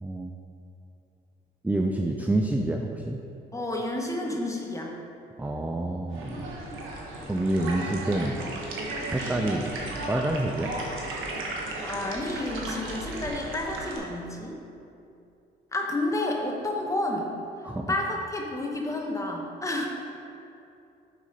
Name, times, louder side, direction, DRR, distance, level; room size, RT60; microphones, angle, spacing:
voice 1, 0.0-0.3 1.6-3.2 5.4-6.5 7.3-8.4 9.1-9.7 10.1-10.7 17.6-17.9, right 1 dB, 10° right, 3 dB, 0.4 m, -27 dB
voice 2, 3.5-5.0 11.8-14.6 15.7-17.3 17.9-19.9, left 1 dB, 15° left, 0 dB, 1.2 m, -30 dB
sound 1, 6.1-14.0, right 2 dB, 85° right, 1.2 m, -35 dB
6.2 x 5.7 x 5.2 m, 2.7 s
cardioid pair, 90°, 20 cm